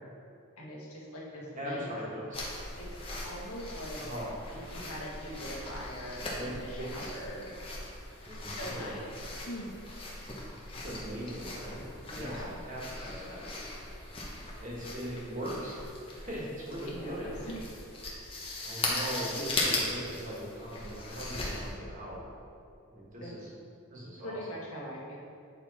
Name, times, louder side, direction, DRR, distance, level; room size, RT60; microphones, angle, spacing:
voice 1, 0.6-1.9 2.8-4.0 4.7-7.4 8.3-9.7 12.0-12.6 16.9-17.6 23.2-23.3 24.2-25.2, equal, 80° left, -4 dB, 1.5 m, -42 dB
voice 2, 1.3-2.4 4.0-4.3 6.3-7.2 8.2-9.0 10.8-11.8 12.2-13.4 14.6-15.8 16.1-17.3 18.6-22.2 22.9-23.4 23.9-24.4, equal, 35° right, -5 dB, 1.5 m, -40 dB
sound 1, 2.3-21.7, left 2 dB, 25° left, 1.0 m, -39 dB
7.7 x 4.5 x 4.2 m, 2.5 s
head